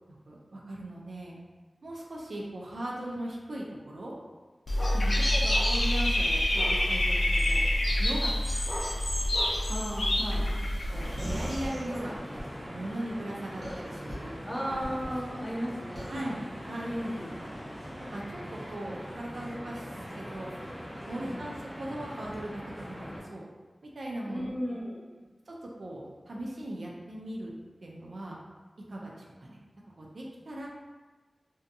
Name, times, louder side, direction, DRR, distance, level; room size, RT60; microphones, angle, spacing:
voice 1, 0.3-1.3 1.8-4.1 4.9-7.2 7.5-7.6 8.0-8.6 10.9-14.3 14.7-14.8 16.1-17.0 18.1-20.5 21.1-22.6 22.9-23.4 23.8-24.8 25.5-27.5 27.8-28.4 28.9-29.6 30.0-30.7, right 1 dB, 85° right, -3 dB, 0.4 m, -39 dB
Dog / Bird, 4.7-11.7, left 1 dB, 60° left, 0.4 m, -27 dB
voice 2, 4.9-5.3 9.7-10.5 14.4-16.1 16.8-17.4 21.1-21.5 24.2-25.0, equal, ahead, -5 dB, 0.6 m, -35 dB
sound 1, 10.9-23.2, equal, 30° right, 1.0 m, -42 dB
sound 2, 11.2-12.5 13.6-14.1 14.7-15.1 15.9-16.2, equal, 65° right, 0.9 m, -39 dB
2.7 x 2.2 x 2.6 m, 1.3 s
wide cardioid pair, 80°, 0 cm